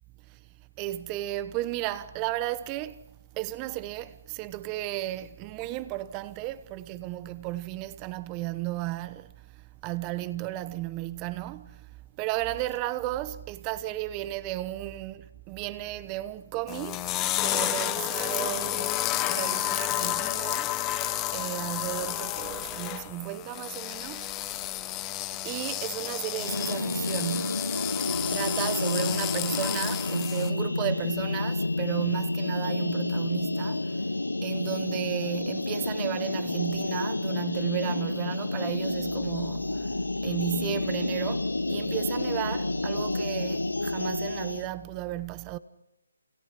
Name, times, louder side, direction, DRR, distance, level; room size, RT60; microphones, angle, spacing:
voice 1, 0.8-3.0 3.3-17.1 17.4-20.9 21.3-24.5 25.4-27.8 28.2-34.1 34.4-39.9 40.2-45.6, right 15 dB, 20° right, 1.0 m, -34 dB
sound 1, 16.7-30.5, left 14 dB, 15° left, 1.1 m, -31 dB
sound 2, 26.4-44.7, left 2 dB, 90° left, 0.9 m, -30 dB
29.5 x 29.0 x 5.9 m
figure-of-eight pair, 150°, 0 cm